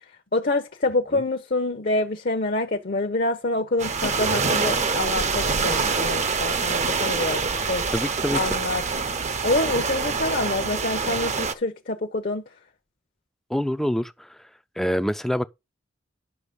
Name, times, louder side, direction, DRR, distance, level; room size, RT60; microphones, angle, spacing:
voice 1, 0.3-7.9 8.3-8.8 9.4-12.4, left 2 dB, 50° left, 0.8 m, -26 dB
sound 1, 3.8-11.5, right 4 dB, 35° right, 0.7 m, -25 dB
voice 2, 7.9-8.4 13.5-14.4 14.8-15.4, equal, ahead, 0.4 m, -25 dB
9.8 x 6.0 x 5.2 m
head